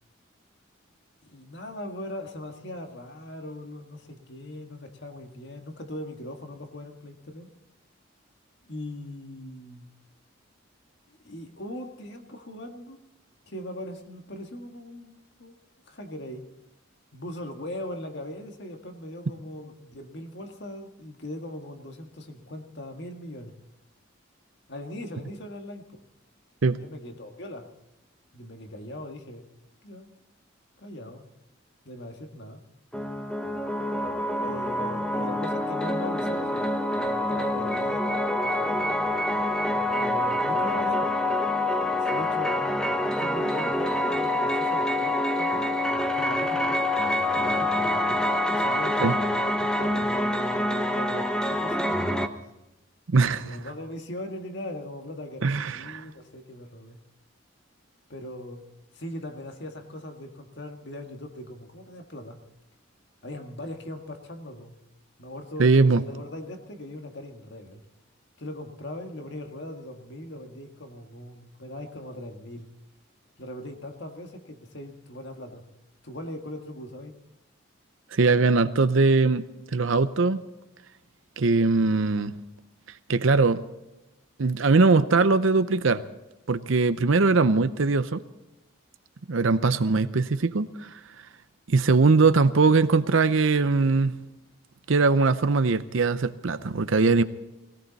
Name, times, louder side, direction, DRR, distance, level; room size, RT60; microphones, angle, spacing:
voice 1, 1.3-7.5 8.7-9.9 11.1-13.0 13.5-15.6 15.9-16.4 17.1-23.5 24.7-26.0 26.8-27.7 28.3-29.5 29.8-30.1 30.8-31.3 31.9-32.6 34.4-36.7 37.0-38.9 39.9-41.1 42.0-42.6 43.2-45.8 46.1-46.8 47.3-48.2 48.5-50.4 50.9-52.3 53.4-57.0 58.1-58.6 58.9-62.4 63.2-64.7 65.2-67.8 68.4-72.7 73.4-75.6 76.0-77.1, left 1 dB, 55° left, 1.8 m, -40 dB
sound 1, 32.9-52.3, left 1 dB, 5° left, 0.9 m, -26 dB
voice 2, 53.1-53.6 55.4-56.0 65.6-66.0 78.1-79.4 79.7-80.4 81.4-82.4 83.1-83.6 84.4-86.0 86.5-88.2 89.3-91.0 91.7-94.2 94.9-97.2, right 3 dB, 70° right, 0.7 m, -21 dB
19.5 x 17.5 x 4.1 m
head